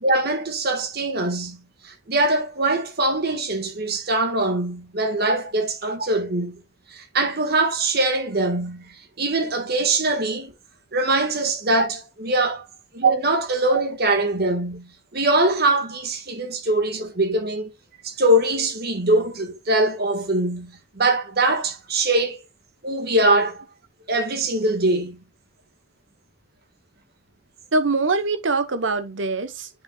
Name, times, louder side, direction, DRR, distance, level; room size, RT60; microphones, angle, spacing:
voice 1, 0.0-6.6 6.9-10.5 10.9-12.6 12.9-17.7 18.0-22.4 22.8-23.6 24.1-25.2, right 2 dB, 55° right, 1.6 m, -22 dB
voice 2, 27.7-29.7, right 3 dB, 75° right, 1.0 m, -23 dB
10.5 x 5.3 x 2.3 m
head